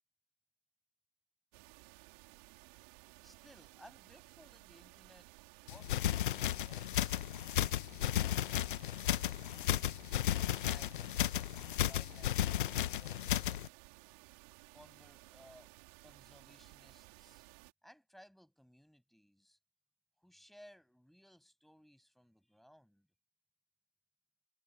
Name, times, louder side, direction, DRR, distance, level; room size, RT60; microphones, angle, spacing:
sound 1, 1.5-17.7, right 35 dB, 45° right, 4.1 m, -58 dB
voice 1, 3.2-5.3 5.7-7.2 10.5-13.5 14.7-15.7 16.0-17.4 17.8-19.6 20.2-23.1, equal, ahead, 6.7 m, -61 dB
sound 2, 5.7-13.7, left 12 dB, 60° left, 0.8 m, -34 dB
figure-of-eight pair, 110°, 29 cm